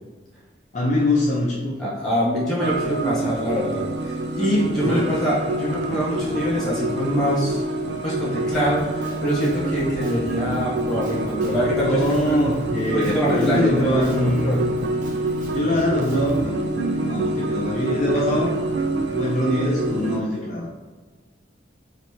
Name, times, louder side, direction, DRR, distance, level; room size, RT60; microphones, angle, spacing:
voice 1, 0.7-1.9 4.8-5.0 11.8-14.6 15.5-18.5 19.1-20.7, left 1 dB, 40° left, -5 dB, 0.5 m, -23 dB
voice 2, 1.8-7.6 8.0-12.3 12.9-14.6, equal, 5° left, -9 dB, 1.4 m, -24 dB
sound 1, 2.6-20.2, right 2 dB, 65° right, 0.3 m, -26 dB
Harp, 4.5-11.6, right 1 dB, 25° right, 1.2 m, -39 dB
Drum kit, 8.5-16.5, right 1 dB, 45° right, 0.7 m, -40 dB
4.1 x 2.8 x 3.1 m, 1.3 s
head